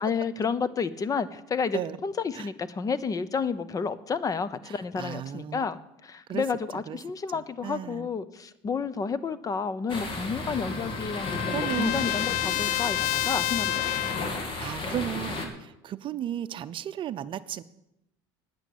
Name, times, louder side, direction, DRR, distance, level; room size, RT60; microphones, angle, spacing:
voice 1, 0.0-13.8, left 5 dB, 30° left, 16 dB, 0.8 m, -31 dB
voice 2, 4.7-5.6 6.3-6.4 6.9-7.0 7.3-8.1 11.5-12.0 14.6-17.6, right 10 dB, 45° right, 13 dB, 0.6 m, -34 dB
sound 1, 9.9-15.5, left 2 dB, 45° left, 2.7 m, -34 dB
Trumpet, 10.0-14.4, left 16 dB, 70° left, 0.4 m, -30 dB
9.8 x 9.1 x 8.6 m, 0.86 s
supercardioid pair, 100°, 12 cm